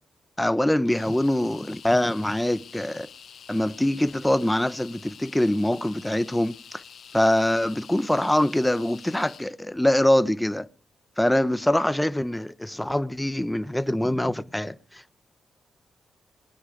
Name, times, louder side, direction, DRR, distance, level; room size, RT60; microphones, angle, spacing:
voice 1, 0.4-3.1 3.5-6.8 7.1-10.7 11.2-15.2, left 1 dB, 5° left, 0.8 m, -24 dB
sound 1, 0.8-9.5, left 7 dB, 65° left, 1.1 m, -47 dB
19.0 x 10.0 x 5.0 m
cardioid pair, 90°, 0 cm